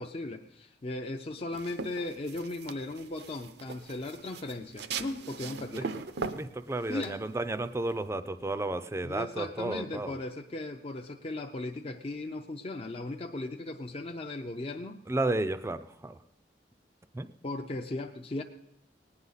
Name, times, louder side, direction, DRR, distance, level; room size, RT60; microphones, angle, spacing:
voice 1, 0.0-6.0 6.9-7.2 9.0-15.0 17.4-18.4, left 2 dB, 35° left, 3 dB, 0.5 m, -37 dB
sound 1, 1.5-8.0, right 5 dB, 70° right, 0.6 m, -40 dB
voice 2, 6.3-10.1 15.1-16.2 17.1-17.3, right 2 dB, 15° right, 12 dB, 0.4 m, -32 dB
19.0 x 9.7 x 4.0 m, 0.76 s
head